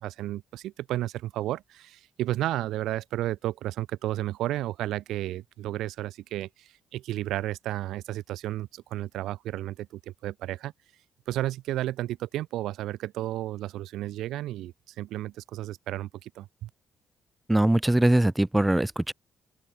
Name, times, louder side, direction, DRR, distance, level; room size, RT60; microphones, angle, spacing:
voice 1, 0.0-10.7 11.3-16.7, right 14 dB, 85° right, 1.4 m, -32 dB
voice 2, 17.5-19.1, right 1 dB, 10° right, 1.1 m, -22 dB
open air
cardioid pair, 90°, 0 cm